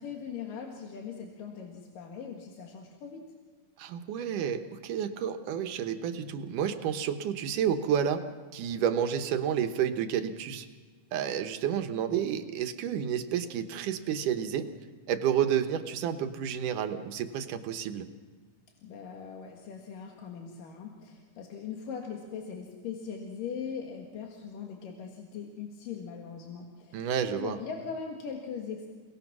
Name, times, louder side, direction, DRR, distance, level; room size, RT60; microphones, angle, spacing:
voice 1, 0.0-3.2 18.8-28.9, left 6 dB, 90° left, 1 dB, 3.4 m, -40 dB
voice 2, 3.8-8.2 8.5-10.7 11.1-14.7 15.1-18.1 26.9-27.6, right 9 dB, 75° right, 8 dB, 2.6 m, -30 dB
29.0 x 19.0 x 6.1 m, 1.5 s
omnidirectional pair, 3.7 m